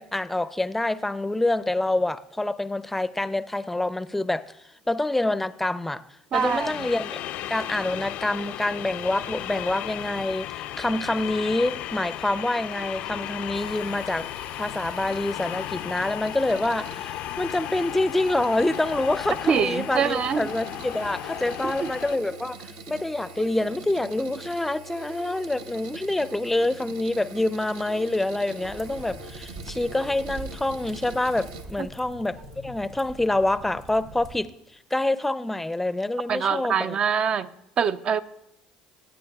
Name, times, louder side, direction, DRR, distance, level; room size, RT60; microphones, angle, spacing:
voice 1, 0.0-4.4 4.9-6.0 6.3-7.2 7.5-14.3 14.6-22.6 22.9-32.4 32.6-34.5 34.9-37.0, left 2 dB, 10° left, 0.5 m, -26 dB
sound 1, 6.3-22.2, left 13 dB, 65° left, 0.4 m, -35 dB
voice 2, 6.3-6.9 19.5-20.5 21.6-21.9 36.3-37.5 37.8-38.2, right 7 dB, 45° right, 0.5 m, -24 dB
sound 2, 13.5-31.6, right 3 dB, 75° right, 0.8 m, -43 dB
sound 3, 28.6-34.4, right 1 dB, 90° right, 3.2 m, -43 dB
23.0 x 9.0 x 2.3 m
hypercardioid pair, 75°, 2 cm